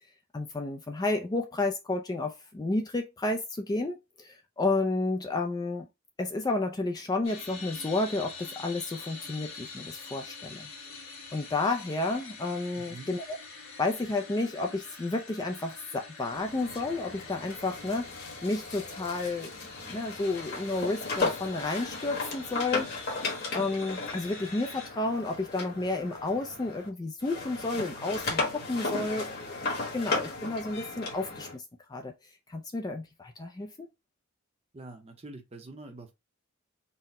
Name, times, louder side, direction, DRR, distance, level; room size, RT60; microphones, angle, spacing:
voice 1, 0.3-5.9 6.2-10.7 11.3-13.4 13.8-18.1 18.4-22.9 23.5-31.6 31.9-32.1 32.5-33.9, left 2 dB, 20° left, 0.3 m, -31 dB
sound 1, 7.2-24.9, left 4 dB, 75° left, 1.6 m, -46 dB
voice 2, 12.8-13.1 34.7-36.1, right 2 dB, 30° right, 0.7 m, -45 dB
sound 2, 16.3-26.9 27.2-31.6, left 3 dB, 45° left, 1.3 m, -36 dB
4.1 x 2.1 x 4.0 m
head